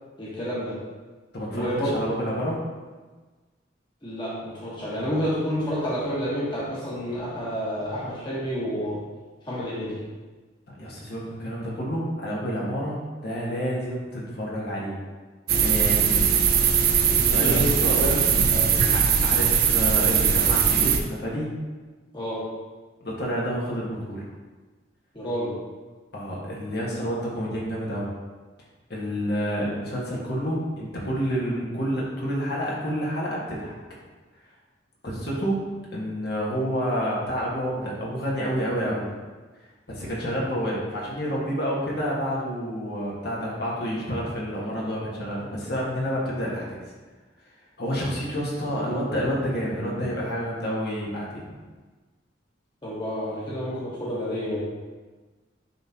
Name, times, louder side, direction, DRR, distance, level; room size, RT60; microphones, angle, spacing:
voice 1, 0.2-0.8 1.5-2.0 4.0-9.0 9.5-10.0 17.1-18.2 18.5-18.7 22.1-22.5 25.1-25.6 52.8-54.6, equal, 25° left, -8 dB, 1.4 m, -29 dB
voice 2, 1.3-2.6 10.8-15.0 15.6-16.3 17.3-18.0 18.9-21.5 23.0-24.3 26.1-28.1 28.9-33.7 35.0-35.6 35.9-39.1 39.9-46.8 47.8-51.4, equal, 55° left, -5 dB, 1.6 m, -29 dB
sound 1, 15.5-21.0, right 7 dB, 55° right, 0.6 m, -20 dB
10.0 x 3.7 x 2.9 m, 1.3 s
head